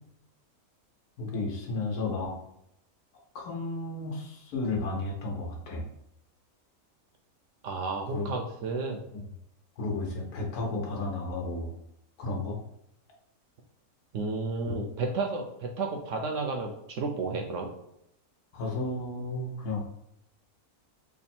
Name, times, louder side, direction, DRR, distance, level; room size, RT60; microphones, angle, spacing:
voice 1, 1.2-2.3 3.3-5.8 8.1-8.2 9.8-11.7 12.2-12.6 18.5-19.8, left 2 dB, 80° left, -1 dB, 1.4 m, -33 dB
voice 2, 7.6-9.0 14.1-17.7, right 3 dB, 70° right, 2 dB, 0.8 m, -32 dB
3.4 x 2.1 x 4.2 m, 0.79 s
omnidirectional pair, 1.6 m